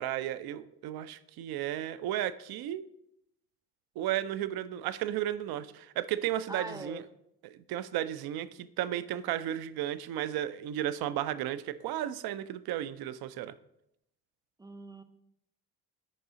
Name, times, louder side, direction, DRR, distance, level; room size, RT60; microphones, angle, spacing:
voice 1, 0.0-2.8 4.0-7.0 7.4-13.5, right 12 dB, 55° right, 14 dB, 0.5 m, -34 dB
voice 2, 6.5-7.1 14.6-15.0, right 2 dB, 10° right, 10 dB, 0.6 m, -41 dB
8.3 x 5.4 x 2.8 m, 0.80 s
hypercardioid pair, 40°, 45 cm